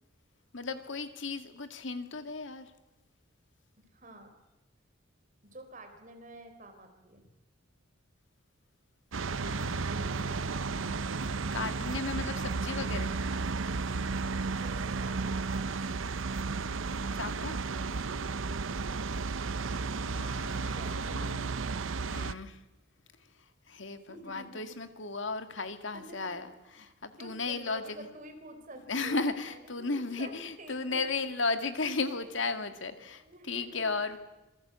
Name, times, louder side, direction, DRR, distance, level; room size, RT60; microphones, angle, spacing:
voice 1, 0.5-2.7 9.4-13.1 17.1-17.6 20.2-21.5 22.0-22.6 23.7-28.1 28.9-34.2, left 3 dB, 70° left, 8 dB, 1.9 m, -35 dB
voice 2, 3.8-4.3 5.5-7.2 14.6-16.3 20.8-21.3 24.1-24.8 25.9-26.4 27.2-30.3 30.6-31.4 31.8-32.3 33.1-34.0, right 1 dB, 40° right, 6 dB, 4.0 m, -49 dB
sound 1, 9.1-22.3, right 4 dB, 80° right, 0.8 m, -33 dB
26.5 x 20.0 x 8.2 m, 1.0 s
head